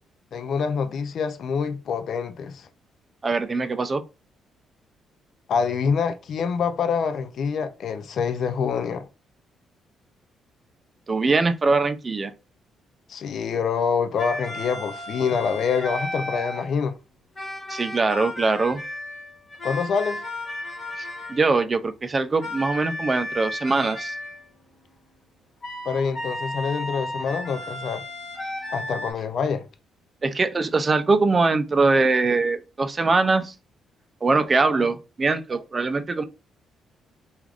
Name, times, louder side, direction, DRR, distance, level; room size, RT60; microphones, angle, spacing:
voice 1, 0.3-2.7 5.5-9.1 13.1-16.9 19.6-20.2 25.8-28.0 28.7-29.6, left 6 dB, 60° left, 0.4 m, -26 dB
voice 2, 3.2-4.0 11.1-12.3 17.7-18.8 21.0-24.2 30.2-33.5 34.2-36.2, right 3 dB, 30° right, 0.4 m, -22 dB
sound 1, 14.2-16.8 17.3-21.6 22.4-24.5 25.6-29.1, left 1 dB, 40° left, 1.0 m, -34 dB
3.2 x 2.4 x 2.4 m
cardioid pair, 90°, 0 cm